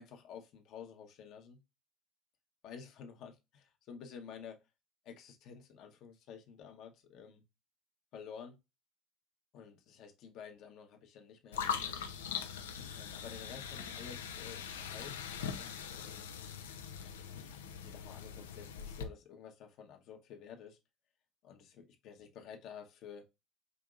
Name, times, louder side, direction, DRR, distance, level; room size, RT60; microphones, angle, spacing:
voice 1, 0.0-1.6 2.6-4.6 5.0-7.4 8.1-8.6 9.5-11.7 12.9-16.3 17.0-20.8 21.4-23.3, left 7 dB, 60° left, 1.0 m, -51 dB
sound 1, 11.5-19.0, left 7 dB, 85° left, 0.5 m, -41 dB
5.0 x 2.9 x 2.4 m
hypercardioid pair, 70°, 0 cm